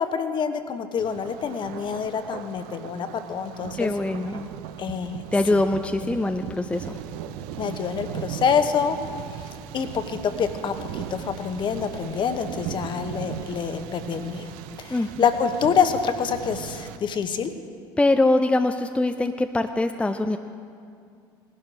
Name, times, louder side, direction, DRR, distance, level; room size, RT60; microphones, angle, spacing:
voice 1, 0.0-3.9 4.8-5.2 6.0-6.1 7.6-9.0 9.7-14.5 14.8-17.5, left 6 dB, 40° left, 8 dB, 1.0 m, -26 dB
Thunder, 1.0-17.0, right 10 dB, 70° right, 0.6 m, -38 dB
voice 2, 3.8-4.4 5.3-7.0 14.9-15.1 18.0-20.4, left 2 dB, 10° left, 7 dB, 0.5 m, -23 dB
18.5 x 11.5 x 3.8 m, 2.3 s
hypercardioid pair, 70°, 12 cm